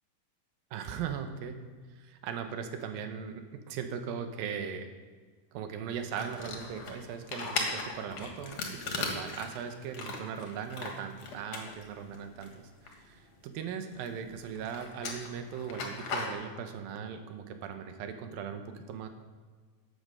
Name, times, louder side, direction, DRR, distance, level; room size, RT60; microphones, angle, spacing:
voice 1, 0.7-1.6 2.1-4.9 5.5-12.6 13.0-19.1, right 7 dB, 85° right, 7 dB, 2.8 m, -39 dB
sound 1, 6.0-13.7 13.9-16.3, left 4 dB, 55° left, 2.5 m, -38 dB
14.0 x 8.6 x 5.6 m, 1.5 s
omnidirectional pair, 4.0 m